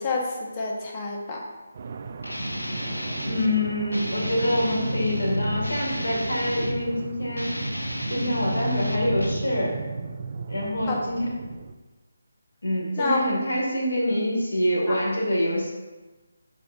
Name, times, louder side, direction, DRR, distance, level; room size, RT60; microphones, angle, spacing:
voice 1, 0.0-1.4 10.9-11.0 13.0-13.3 14.9-15.0, left 3 dB, 25° left, -1 dB, 1.4 m, -28 dB
sound 1, 1.7-11.7, right 5 dB, 40° right, 0.5 m, -36 dB
Guitar, 2.2-3.5 3.9-6.9 7.3-9.5, left 1 dB, 85° left, 1.0 m, -31 dB
voice 2, 3.3-7.5 8.1-9.8 10.5-11.2 12.6-15.7, left 1 dB, 70° left, -2 dB, 2.3 m, -25 dB
15.0 x 5.3 x 2.7 m, 1.2 s
figure-of-eight pair, 155°, 0 cm